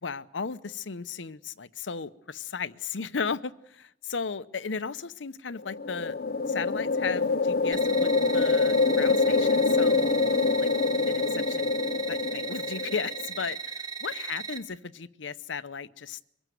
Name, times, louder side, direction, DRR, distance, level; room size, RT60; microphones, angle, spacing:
voice 1, 0.0-6.2 6.5-10.0 10.6-10.7 11.1-11.7 12.1-16.2, left 5 dB, 90° left, 14 dB, 0.8 m, -35 dB
sound 1, 5.6-13.3, left 4 dB, 55° left, 0.9 m, -25 dB
sound 2, 7.7-14.6, right 6 dB, 20° right, 1.5 m, -37 dB
24.0 x 15.5 x 9.2 m, 0.76 s
head